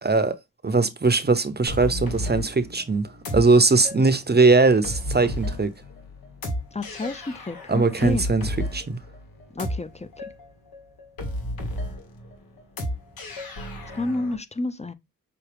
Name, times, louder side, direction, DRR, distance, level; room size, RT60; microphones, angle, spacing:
voice 1, 0.0-0.3 0.6-5.7 7.7-9.0, right 3 dB, 30° right, 0.7 m, -20 dB
sound 1, 1.7-14.4, left 1 dB, 80° left, 1.5 m, -33 dB
voice 2, 6.7-8.2 9.6-9.9 13.9-14.9, left 2 dB, 20° left, 0.6 m, -29 dB
6.0 x 2.3 x 3.4 m
cardioid pair, 45°, 35 cm